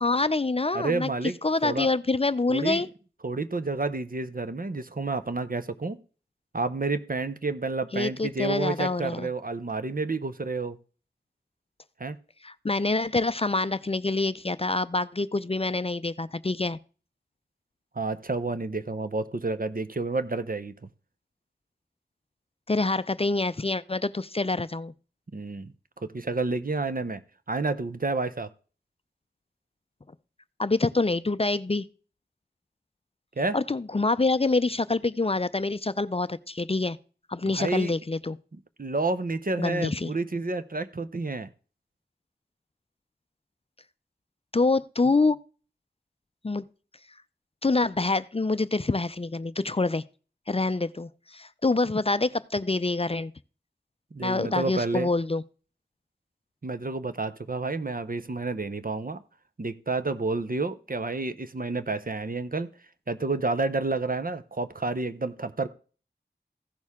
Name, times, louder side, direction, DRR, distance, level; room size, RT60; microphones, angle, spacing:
voice 1, 0.0-1.1 1.4-2.9 7.9-9.3 12.4-16.8 22.7-24.9 30.6-31.9 33.5-37.0 37.3-38.4 39.6-40.1 44.5-45.4 46.4-46.6 47.6-50.0 50.5-53.3 54.2-55.4, left 3 dB, 35° left, 0.4 m, -26 dB
voice 2, 0.7-1.4 1.6-1.9 2.5-2.9 3.2-6.0 6.5-10.8 12.0-12.2 18.0-20.7 25.3-25.7 26.0-27.2 27.5-28.5 33.4-33.6 37.4-37.9 38.5-41.5 54.1-55.1 56.6-59.2 59.6-62.7 63.1-65.7, right 3 dB, 55° right, 0.7 m, -30 dB
15.5 x 6.4 x 3.6 m
wide cardioid pair, 40°, 18 cm